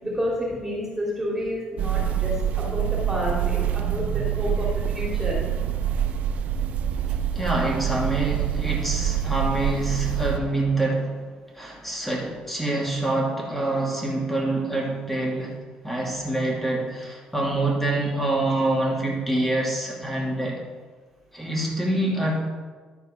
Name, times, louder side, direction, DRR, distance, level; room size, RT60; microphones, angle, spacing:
voice 1, 0.0-5.4, left 1 dB, 15° right, -5 dB, 2.9 m, -30 dB
sound 1, 1.8-10.4, right 9 dB, 65° right, 0.6 m, -26 dB
voice 2, 7.3-11.1 11.5-15.5 15.8-20.6 21.3-22.4, right 2 dB, 5° left, -2 dB, 2.7 m, -26 dB
12.5 x 4.6 x 5.0 m, 1.4 s
supercardioid pair, 80°, 3 cm